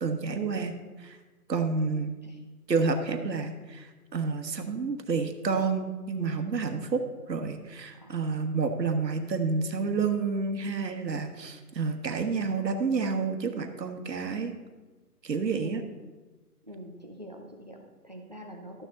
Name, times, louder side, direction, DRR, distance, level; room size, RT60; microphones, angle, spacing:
voice 1, 0.0-0.7 1.0-1.2 1.5-2.2 2.7-7.0 7.3-14.5 15.2-15.8, right 4 dB, 90° right, 6 dB, 1.4 m, -29 dB
voice 2, 16.6-18.9, equal, 25° right, 2 dB, 0.7 m, -45 dB
13.0 x 6.2 x 4.0 m, 1.3 s
hypercardioid pair, 175°, 49 cm